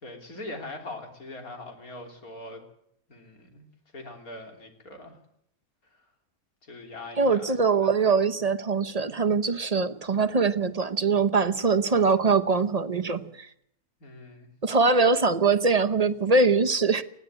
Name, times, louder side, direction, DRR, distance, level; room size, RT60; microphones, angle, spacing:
voice 1, 0.0-2.6 3.1-3.6 3.9-5.2 6.6-7.9 14.0-14.5, left 2 dB, 75° left, 4 dB, 3.8 m, -42 dB
voice 2, 7.2-13.5 14.6-17.0, right 4 dB, 30° right, 10 dB, 0.8 m, -23 dB
20.0 x 15.0 x 9.1 m, 0.74 s
omnidirectional pair, 1.6 m